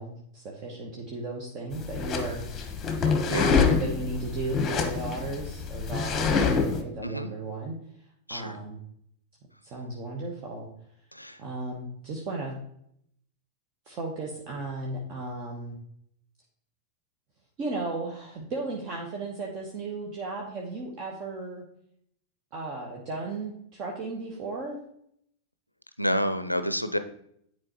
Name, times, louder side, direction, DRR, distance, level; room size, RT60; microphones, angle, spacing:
voice 1, 0.0-2.4 3.3-7.7 8.3-8.8 9.6-10.7 11.4-12.6 13.9-15.7 17.6-21.6 22.5-24.8, right 2 dB, 35° right, -1 dB, 1.1 m, -35 dB
sound 1, 1.7-6.8, left 5 dB, 25° left, 1.0 m, -26 dB
voice 2, 3.3-3.6 7.0-7.3 8.3-8.6 11.1-11.4 26.0-27.0, equal, 90° left, 11 dB, 0.4 m, -29 dB
10.0 x 4.5 x 3.0 m, 0.70 s
figure-of-eight pair, 90°, 0 cm